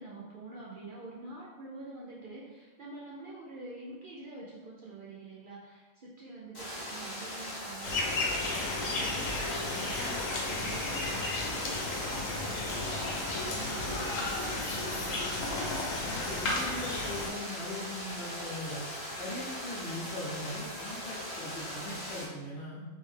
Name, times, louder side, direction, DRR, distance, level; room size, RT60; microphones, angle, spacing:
voice 1, 0.0-15.3, right 3 dB, 55° right, -5 dB, 0.6 m, -47 dB
sound 1, 6.5-22.2, equal, 20° left, 0.8 m, -40 dB
sound 2, 7.8-17.3, left 2 dB, 90° left, 1.1 m, -33 dB
voice 2, 16.0-18.8 19.2-22.8, left 1 dB, 60° left, -4 dB, 1.0 m, -40 dB
3.4 x 3.2 x 3.2 m, 1.2 s
omnidirectional pair, 1.3 m